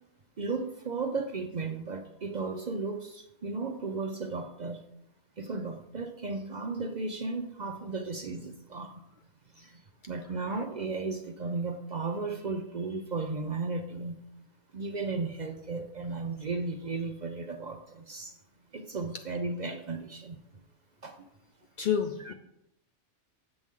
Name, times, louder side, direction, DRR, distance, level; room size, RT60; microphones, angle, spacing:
voice 1, 0.4-4.8 5.4-9.0 9.6-14.2 14.7-18.3 18.7-20.4 21.0-21.2 22.2-22.3, right 3 dB, 50° right, 6 dB, 0.6 m, -35 dB
voice 2, 21.8-22.3, left 8 dB, 60° left, 4 dB, 0.5 m, -30 dB
7.8 x 7.0 x 3.6 m, 0.79 s
omnidirectional pair, 1.2 m